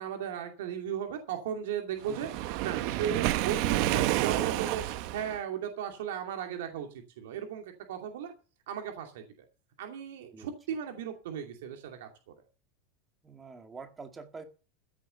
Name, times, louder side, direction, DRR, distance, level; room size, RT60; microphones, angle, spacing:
voice 1, 0.0-2.3 2.6-4.8 5.1-6.9 7.2-8.3 8.7-9.2 9.8-12.1, right 9 dB, 80° right, 3 dB, 2.5 m, -36 dB
Waves surf, 2.0-5.4, right 15 dB, 50° right, 0.9 m, -29 dB
voice 2, 13.2-14.4, right 4 dB, 15° right, 6 dB, 1.9 m, -46 dB
15.0 x 7.2 x 6.8 m, 0.34 s
supercardioid pair, 165°, 0 cm